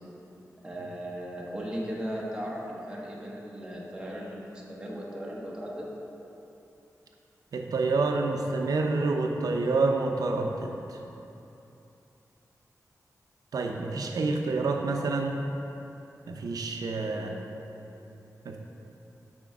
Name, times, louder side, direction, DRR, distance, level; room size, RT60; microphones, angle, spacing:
voice 1, 0.6-5.9 17.1-17.4, equal, 15° right, -4 dB, 1.0 m, -37 dB
voice 2, 7.5-11.0 13.5-15.4 16.3-17.3 18.4-18.6, right 3 dB, 80° right, 2 dB, 0.6 m, -28 dB
6.1 x 4.4 x 4.7 m, 2.9 s
wide cardioid pair, 115°, 6 cm